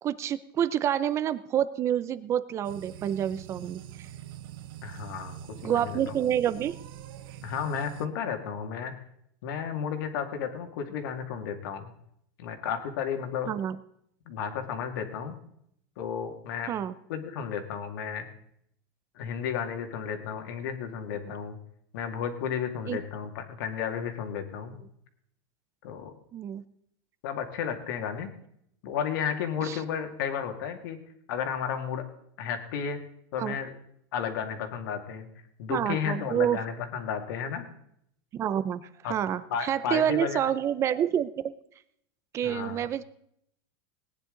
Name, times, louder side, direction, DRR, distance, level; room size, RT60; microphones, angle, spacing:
voice 1, 0.0-3.8 5.6-6.8 13.5-13.8 16.7-16.9 22.9-23.0 26.3-26.6 29.6-29.8 33.4-33.6 35.7-36.6 38.3-41.5 42.3-43.0, right 10 dB, 25° right, 15 dB, 0.6 m, -28 dB
sound 1, 2.6-8.1, right 12 dB, 75° right, 0.8 m, -44 dB
voice 2, 4.8-6.1 7.4-8.9 9.4-11.9 12.4-13.5 14.3-15.4 16.0-16.7 17.1-18.3 19.2-21.6 21.9-24.8 25.8-26.2 27.2-28.3 28.8-31.0 31.3-32.0 32.4-33.0 33.3-33.7 34.1-35.3 35.6-37.7 39.0-39.1 39.5-40.4 42.4-42.8, left 7 dB, 65° left, 6 dB, 2.2 m, -33 dB
19.0 x 10.0 x 3.9 m, 0.70 s
supercardioid pair, 160°, 12 cm